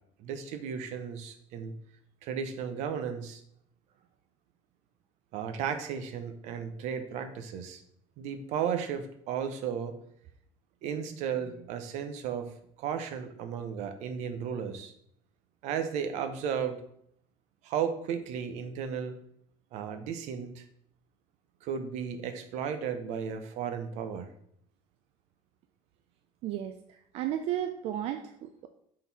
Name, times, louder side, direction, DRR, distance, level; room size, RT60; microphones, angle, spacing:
voice 1, 0.2-1.7 2.2-3.4 5.3-7.8 8.2-9.9 10.8-14.9 15.6-16.8 17.6-19.2 19.7-20.6 21.6-24.3, right 7 dB, 80° right, 9 dB, 0.8 m, -34 dB
voice 2, 26.4-28.7, right 11 dB, 60° right, 7 dB, 0.4 m, -34 dB
6.4 x 3.9 x 4.1 m, 0.70 s
cardioid pair, 170°, 12 cm